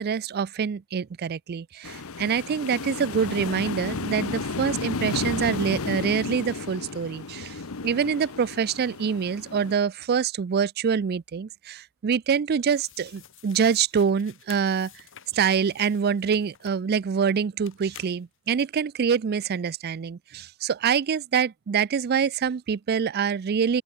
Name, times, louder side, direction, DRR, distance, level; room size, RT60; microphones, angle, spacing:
voice 1, 0.0-15.0 15.3-23.8, right 6 dB, 45° right, 0.4 m, -25 dB
sound 1, 1.8-9.7, left 3 dB, 80° left, 1.1 m, -33 dB
sound 2, 12.7-17.1 17.6-18.7, left 10 dB, 65° left, 4.6 m, -51 dB
open air
head